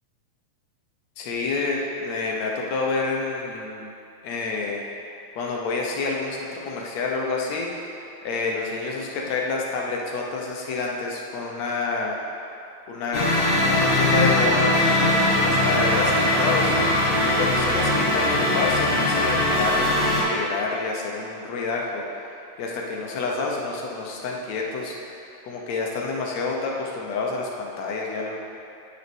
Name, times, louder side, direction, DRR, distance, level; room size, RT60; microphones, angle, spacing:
voice 1, 1.2-3.9 4.2-4.8 5.3-7.9 8.2-12.2 12.9-13.3 13.6-14.7 15.0-22.0 22.6-25.0 25.4-28.4, left 3 dB, 70° left, -1 dB, 2.1 m, -28 dB
sound 1, 13.1-20.2, left 1 dB, 35° left, 0.9 m, -21 dB
9.0 x 5.8 x 6.1 m, 2.7 s
omnidirectional pair, 3.5 m